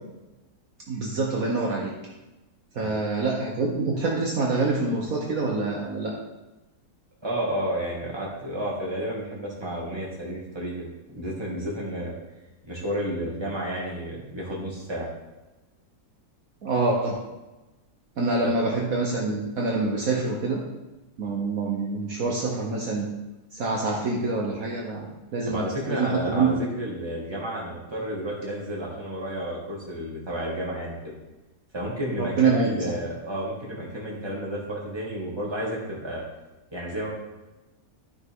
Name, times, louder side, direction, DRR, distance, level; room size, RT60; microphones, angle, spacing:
voice 1, 0.9-1.9 2.7-6.1 16.6-17.2 18.2-20.6 21.2-23.1 23.5-26.8 32.2-32.8, right 3 dB, 60° right, -2 dB, 1.5 m, -26 dB
voice 2, 7.2-12.1 12.7-15.1 18.4-18.5 25.5-31.1 31.7-36.2 36.7-37.1, right 1 dB, 15° right, -4 dB, 2.3 m, -31 dB
12.5 x 5.9 x 3.8 m, 1.1 s
omnidirectional pair, 1.8 m